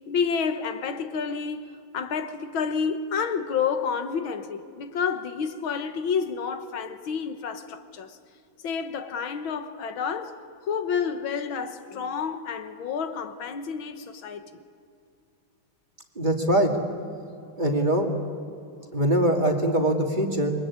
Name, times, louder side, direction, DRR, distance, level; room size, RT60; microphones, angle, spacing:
voice 1, 0.1-8.2 8.6-14.6, left 6 dB, 80° left, 2.0 m, -29 dB
voice 2, 16.2-16.7 17.6-18.1 18.9-20.5, right 1 dB, 25° right, 2.5 m, -22 dB
28.0 x 23.0 x 8.6 m
omnidirectional pair, 2.2 m